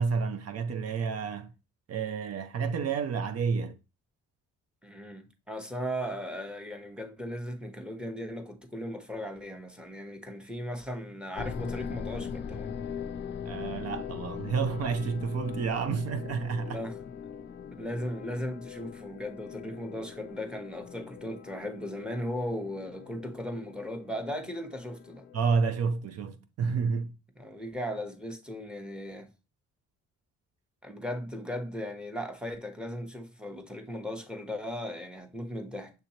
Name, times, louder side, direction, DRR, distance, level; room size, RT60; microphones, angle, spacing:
voice 1, 0.0-1.5 1.9-3.7 13.5-16.8 25.3-27.1, right 5 dB, 55° right, 0.6 m, -30 dB
voice 2, 4.8-12.7 16.6-17.0 17.8-25.3 27.4-29.3 30.8-35.9, equal, 5° right, 0.9 m, -37 dB
sound 1, 11.3-25.4, left 7 dB, 40° left, 0.4 m, -41 dB
6.6 x 2.9 x 2.8 m
cardioid pair, 90°, 30 cm